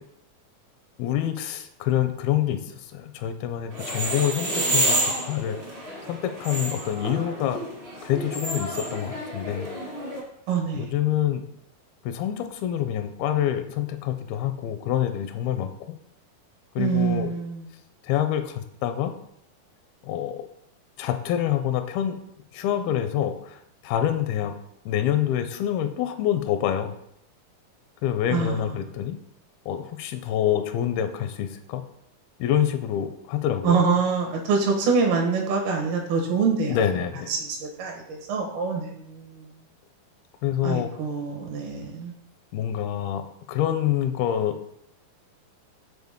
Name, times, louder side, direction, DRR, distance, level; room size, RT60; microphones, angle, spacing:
voice 1, 1.0-5.6 6.1-7.6 8.0-9.7 10.8-11.4 12.0-16.0 16.8-17.3 18.0-19.1 20.0-20.5 21.0-22.2 22.5-24.6 24.9-27.0 28.0-29.2 29.7-31.8 32.4-33.8 36.7-37.3 40.4-40.9 42.5-44.6, left 11 dB, 85° left, 9 dB, 2.5 m, -26 dB
sound 1, 3.7-10.2, right 1 dB, 45° right, 0.6 m, -29 dB
voice 2, 10.5-10.9 16.8-17.7 28.3-28.8 33.6-36.8 37.3-39.5 40.6-42.1, right 5 dB, 80° right, 0 dB, 3.3 m, -25 dB
8.2 x 4.1 x 3.6 m, 0.74 s
omnidirectional pair, 4.3 m